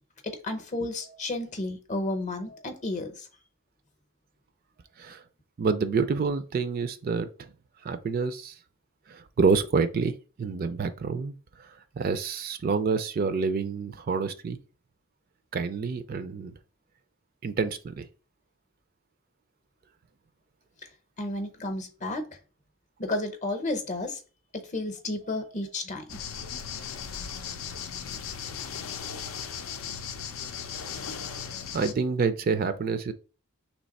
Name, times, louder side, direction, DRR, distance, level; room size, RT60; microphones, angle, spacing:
voice 1, 0.2-3.3 21.2-22.3 23.0-24.2 24.5-26.2, left 2 dB, 35° left, 0.7 m, -32 dB
voice 2, 5.6-7.5 7.8-8.5 9.1-11.4 12.0-14.6 15.5-16.5 17.4-18.1 31.7-33.1, right 5 dB, 45° right, 0.4 m, -27 dB
sound 1, 26.1-31.9, left 7 dB, 80° left, 0.5 m, -37 dB
3.2 x 2.9 x 4.0 m
head